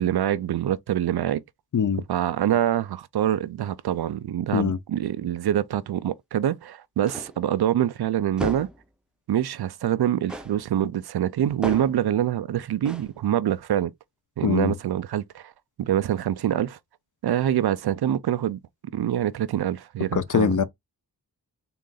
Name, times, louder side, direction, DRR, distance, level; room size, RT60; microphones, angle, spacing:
voice 1, 0.0-1.4 2.1-8.7 9.3-13.9 14.4-15.5 15.8-16.8 17.2-18.6 18.9-20.6, right 11 dB, 70° right, 0.5 m, -25 dB
sound 1, 7.1-7.5 8.4-8.8 10.3-10.6 11.6-12.1 12.8-13.1, equal, ahead, 0.6 m, -34 dB
voice 2, 14.4-14.7 20.1-20.6, left 7 dB, 50° left, 0.6 m, -22 dB
3.8 x 2.4 x 3.9 m
cardioid pair, 55°, 41 cm